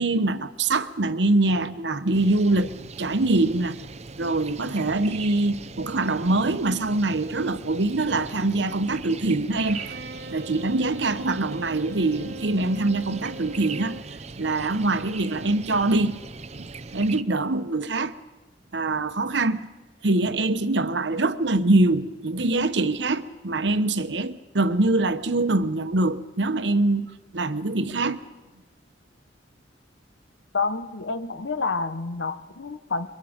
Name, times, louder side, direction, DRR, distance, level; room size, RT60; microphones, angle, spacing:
voice 1, 0.0-3.8 4.2-9.8 10.3-14.0 14.4-16.2 16.6-16.7 16.9-18.1 18.7-19.6 20.0-28.2, right 2 dB, 75° right, 1.0 m, -24 dB
sound 1, 2.1-17.2, right 4 dB, 35° right, 0.7 m, -40 dB
Bowed string instrument, 9.6-14.1, right 3 dB, 55° right, 1.4 m, -41 dB
voice 2, 30.5-33.1, left 4 dB, 90° left, 1.1 m, -28 dB
26.0 x 23.0 x 5.2 m
head